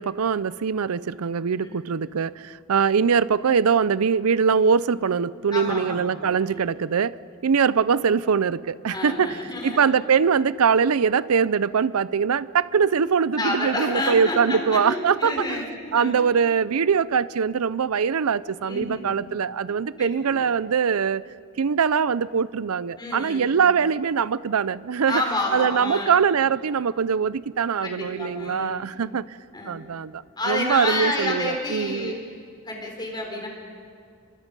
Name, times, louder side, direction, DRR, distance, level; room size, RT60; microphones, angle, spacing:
voice 1, 0.0-7.2 7.4-15.6 15.9-21.2 21.6-25.2 25.5-29.4 29.6-32.1, right 6 dB, 85° right, 18 dB, 0.5 m, -22 dB
voice 2, 5.5-6.1 6.4-6.7 8.9-9.8 13.0-16.2 18.7-19.3 20.0-20.4 23.0-23.5 25.1-26.2 27.8-28.8 29.5-29.8 30.4-32.1 32.7-33.5, left 2 dB, 20° left, 1 dB, 4.4 m, -29 dB
27.5 x 23.5 x 5.4 m, 2.2 s
head